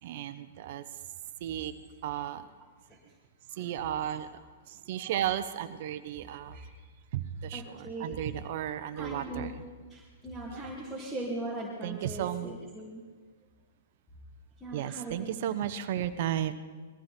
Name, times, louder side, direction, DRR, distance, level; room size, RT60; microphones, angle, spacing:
voice 1, 0.0-0.8 1.4-1.7 2.0-2.5 3.6-4.4 4.7-6.6 7.1-9.5 10.5-10.7 11.8-12.5 14.7-16.5, right 11 dB, 55° right, 11 dB, 1.0 m, -34 dB
voice 2, 7.5-8.2 8.9-9.6 9.9-13.0 14.6-15.1, right 1 dB, 5° left, -5 dB, 2.8 m, -39 dB
21.0 x 15.0 x 4.4 m, 1.4 s
hypercardioid pair, 125°, 0 cm